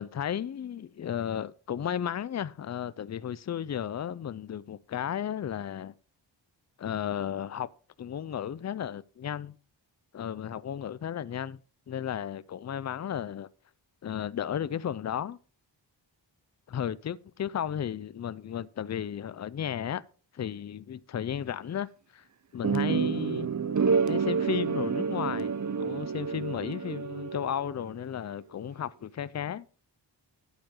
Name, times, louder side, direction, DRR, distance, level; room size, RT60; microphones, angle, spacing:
voice 1, 0.0-5.9 6.8-7.7 8.0-9.5 10.1-11.6 11.9-13.5 14.0-15.4 16.7-20.0 20.3-22.2 22.5-23.5 24.1-29.7, left 9 dB, 40° left, 0.4 m, -34 dB
sound 1, 22.6-27.7, right 6 dB, 40° right, 0.7 m, -29 dB
10.5 x 8.8 x 3.7 m
wide cardioid pair, 135°, 45 cm